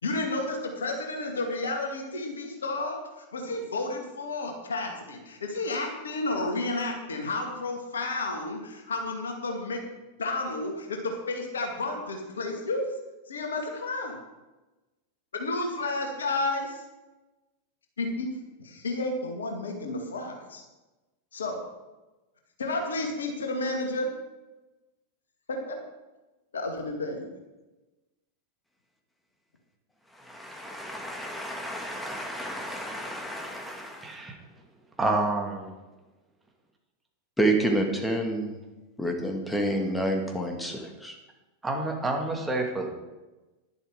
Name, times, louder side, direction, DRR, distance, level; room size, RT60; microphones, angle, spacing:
voice 1, 0.0-9.8 10.2-12.9 13.3-14.2 15.3-16.8 18.0-18.3 18.6-20.6 21.3-21.6 22.6-24.1 25.5-25.8 26.5-27.2, left 2 dB, 70° left, 3 dB, 2.1 m, -31 dB
voice 2, 30.1-34.2 37.4-38.6 39.0-41.2, right 1 dB, 5° left, 2 dB, 2.0 m, -29 dB
voice 3, 34.0-34.4 35.0-35.7 41.6-42.9, right 2 dB, 10° right, 1 dB, 2.3 m, -28 dB
11.5 x 11.0 x 4.9 m, 1.1 s
figure-of-eight pair, 90°, 0 cm